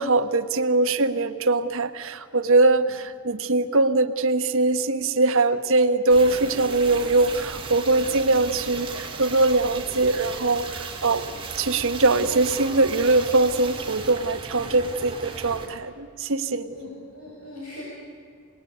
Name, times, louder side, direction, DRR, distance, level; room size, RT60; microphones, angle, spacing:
voice 1, 0.0-16.8, right 2 dB, 65° right, 10 dB, 1.3 m, -22 dB
sound 1, 6.1-15.7, right 4 dB, 25° right, 3.5 m, -36 dB
voice 2, 7.8-8.4 16.3-17.8, left 2 dB, 85° left, -5 dB, 7.3 m, -42 dB
27.5 x 20.0 x 9.3 m, 2.2 s
head